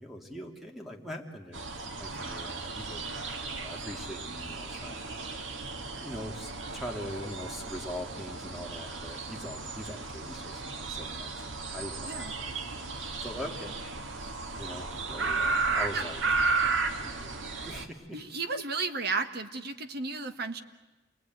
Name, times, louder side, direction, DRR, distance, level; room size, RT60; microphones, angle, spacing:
voice 1, 0.0-1.6 2.0-5.4 6.0-12.8 13.2-13.8 14.2-16.2 17.0-18.2, equal, ahead, 2 dB, 2.7 m, -42 dB
sound 1, 1.5-17.9, right 3 dB, 75° right, 2.0 m, -34 dB
voice 2, 18.1-20.6, right 4 dB, 55° right, 8 dB, 1.5 m, -33 dB
28.5 x 21.0 x 9.4 m, 1.1 s
head